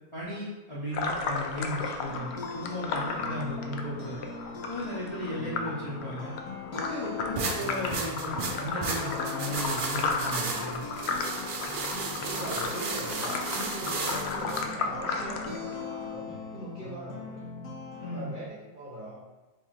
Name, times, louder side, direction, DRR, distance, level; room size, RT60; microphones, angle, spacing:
voice 1, 0.1-4.2 4.7-6.3 6.7-10.9 18.0-18.3, left 1 dB, 25° left, -9 dB, 0.8 m, -36 dB
sound 1, 0.9-16.1, left 4 dB, 65° left, 0.6 m, -35 dB
sound 2, 1.5-18.5, left 3 dB, 85° left, 1.4 m, -41 dB
sound 3, 7.4-14.6, right 4 dB, 65° right, 0.5 m, -34 dB
voice 2, 12.1-17.4 18.0-19.1, right 1 dB, 40° right, -5 dB, 1.0 m, -42 dB
3.5 x 3.4 x 4.3 m, 1.2 s
omnidirectional pair, 1.5 m